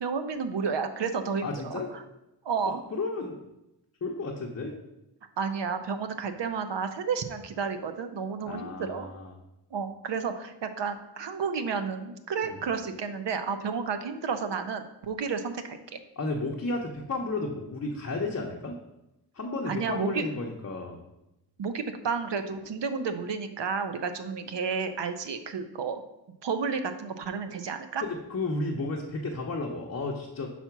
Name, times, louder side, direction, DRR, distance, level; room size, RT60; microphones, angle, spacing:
voice 1, 0.0-2.0 2.4-2.8 5.4-9.1 9.7-15.8 19.7-20.2 21.6-26.0 26.4-28.0, right 5 dB, 75° right, 9 dB, 0.7 m, -31 dB
voice 2, 1.4-1.9 2.9-3.4 4.0-4.8 8.5-9.3 12.4-12.6 16.2-18.8 19.3-21.0 28.0-30.5, left 3 dB, 35° left, -1 dB, 0.7 m, -33 dB
5.7 x 4.2 x 5.8 m, 0.92 s
wide cardioid pair, 120°, 43 cm